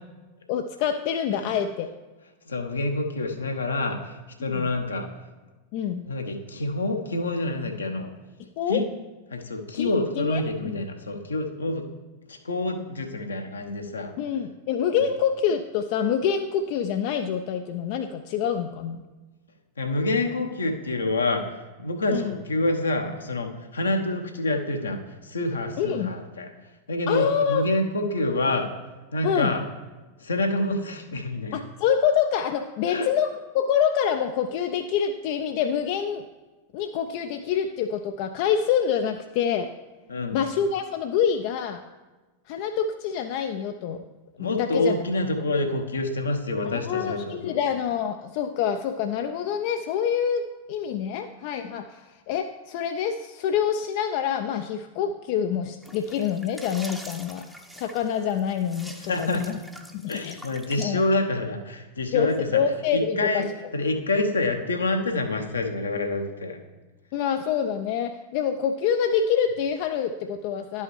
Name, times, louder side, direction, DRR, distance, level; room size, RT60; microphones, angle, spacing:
voice 1, 0.5-1.9 4.4-4.7 5.7-6.0 8.6-8.8 9.7-10.4 14.2-19.0 22.1-22.4 25.8-26.1 27.1-27.7 29.2-29.5 31.5-36.2 36.7-39.7 40.3-41.8 42.5-44.0 44.4-45.0 46.6-57.5 57.7-59.5 59.9-60.4 60.8-61.0 62.1-63.5 67.1-70.8, left 8 dB, 45° left, 7 dB, 0.3 m, -26 dB
voice 2, 2.5-5.1 6.1-8.1 8.7-8.8 9.3-11.8 12.3-14.1 19.8-26.5 26.9-28.7 29.1-29.6 30.2-31.5 32.9-33.1 40.1-40.4 44.4-47.6 59.0-59.5 60.1-62.6 62.9-63.5 63.7-66.6, left 2 dB, 75° left, 4 dB, 0.8 m, -27 dB
sound 1, 55.8-60.8, equal, ahead, 0.6 m, -44 dB
11.0 x 5.5 x 3.2 m, 1.2 s
figure-of-eight pair, 90°, 0 cm